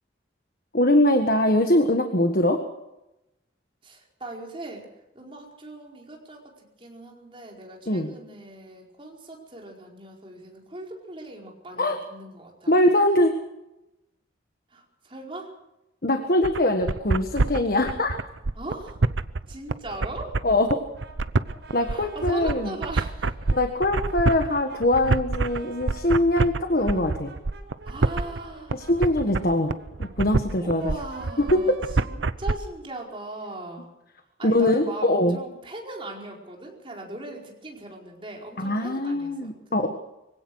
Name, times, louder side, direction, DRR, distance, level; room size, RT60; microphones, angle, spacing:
voice 1, 0.7-2.6 7.9-8.1 11.8-12.0 12.7-13.3 16.0-18.2 20.4-20.8 21.7-22.7 23.5-27.3 28.7-29.7 30.0-30.8 31.5-31.8 34.4-35.4 38.6-39.9, left 1 dB, 50° left, 5 dB, 1.5 m, -22 dB
voice 2, 3.8-4.9 5.1-12.7 14.7-15.5 18.5-19.0 19.5-20.4 21.9-23.5 27.8-28.8 30.6-33.9 34.4-39.9, right 2 dB, 30° right, -1 dB, 4.8 m, -39 dB
sound 1, 16.4-32.5, right 3 dB, 80° right, 0.8 m, -26 dB
Brass instrument, 20.9-26.1 26.6-32.9, right 2 dB, 65° right, 5.8 m, -47 dB
24.0 x 17.0 x 6.4 m, 0.93 s
head